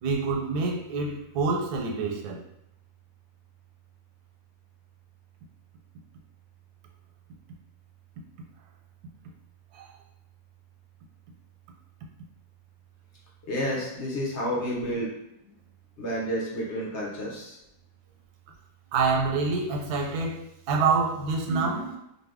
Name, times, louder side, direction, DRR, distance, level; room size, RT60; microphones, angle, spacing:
voice 1, 0.0-2.4 9.7-9.9 18.9-22.0, right 4 dB, 90° right, 2 dB, 1.2 m, -27 dB
voice 2, 13.5-15.1 16.0-17.6, equal, 55° left, -4 dB, 0.9 m, -30 dB
2.6 x 2.6 x 3.4 m, 0.83 s
omnidirectional pair, 1.6 m